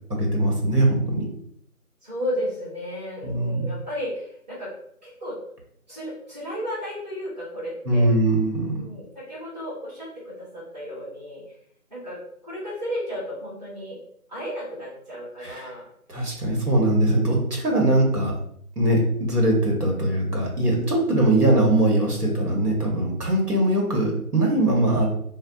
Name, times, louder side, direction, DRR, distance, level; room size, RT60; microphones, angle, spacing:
voice 1, 0.1-1.3 3.2-3.6 7.8-8.7 15.4-15.7 16.1-18.3 18.8-25.1, right 1 dB, 85° right, -1 dB, 1.2 m, -21 dB
voice 2, 2.0-4.7 5.0-5.4 5.9-8.1 8.8-11.4 11.9-12.2 12.4-14.0 14.3-15.9, equal, 30° right, -13 dB, 1.4 m, -33 dB
3.3 x 2.3 x 2.7 m, 0.68 s
figure-of-eight pair, 170°, 45 cm